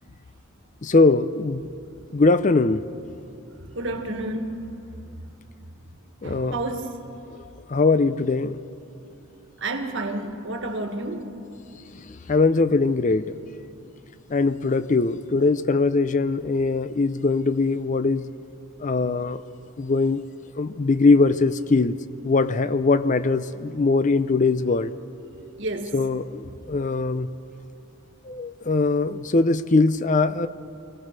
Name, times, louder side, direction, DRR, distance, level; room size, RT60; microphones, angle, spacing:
voice 1, 0.8-1.7 2.1-2.8 6.2-6.6 7.7-8.6 12.3-13.3 14.3-18.3 18.8-19.4 19.8-20.2 20.6-22.0 22.2-24.9 25.9-27.3 28.3-30.5, left 3 dB, 35° left, 13 dB, 0.5 m, -21 dB
voice 2, 3.8-4.6 6.2-6.9 9.6-11.3 25.6-26.0, right 2 dB, 60° right, 5 dB, 1.9 m, -30 dB
25.0 x 17.5 x 6.7 m, 2.8 s
head